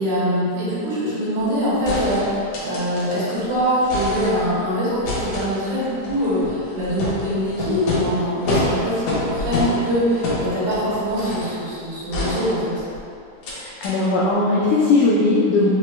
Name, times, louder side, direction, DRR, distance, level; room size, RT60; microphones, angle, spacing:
voice 1, 0.0-12.8, equal, 65° right, -11 dB, 2.5 m, -23 dB
sound 1, 1.9-3.4 3.7-4.6 5.1-11.6 12.1-13.0 13.4-13.6 13.8-13.9, left 2 dB, 75° left, 1.8 m, -27 dB
voice 2, 13.5-15.7, left 3 dB, 90° left, -6 dB, 1.7 m, -18 dB
5.6 x 2.2 x 3.1 m, 2.5 s
omnidirectional pair, 4.0 m